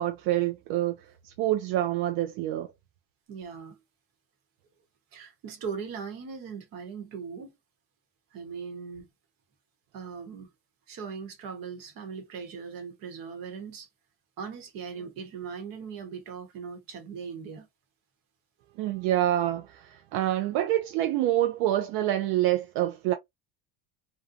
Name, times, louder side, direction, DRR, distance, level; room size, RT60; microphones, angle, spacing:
voice 1, 0.0-2.7 18.8-23.1, right 13 dB, 75° right, 0.5 m, -27 dB
voice 2, 3.3-3.8 5.1-7.6 8.3-9.1 9.9-10.5 10.9-13.9 14.4-17.7, right 6 dB, 55° right, 1.0 m, -39 dB
2.6 x 2.2 x 2.5 m
cardioid pair, 155°, 41 cm